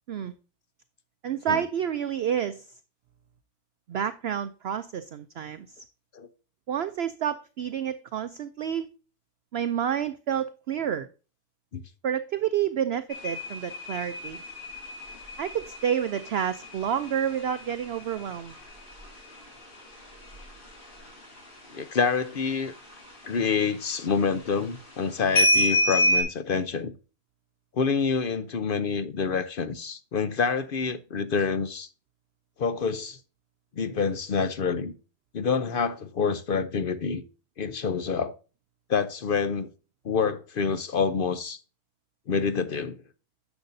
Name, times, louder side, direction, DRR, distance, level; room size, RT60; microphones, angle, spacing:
voice 1, 1.2-2.7 3.9-5.8 6.7-8.9 9.5-11.1 12.0-14.4 15.4-18.5, right 9 dB, 65° right, 0.6 m, -29 dB
sound 1, 13.1-21.4 21.6-22.1 22.5-23.6 23.9-24.5 25.4-26.2, left 1 dB, 35° left, 2.9 m, -28 dB
voice 2, 21.7-22.7 23.3-26.9 27.7-31.9 32.6-33.2 33.8-34.9 35.3-37.2 37.6-38.3 38.9-39.7 40.0-41.6 42.3-43.0, left 5 dB, 55° left, 0.6 m, -27 dB
10.5 x 7.1 x 2.6 m
omnidirectional pair, 1.5 m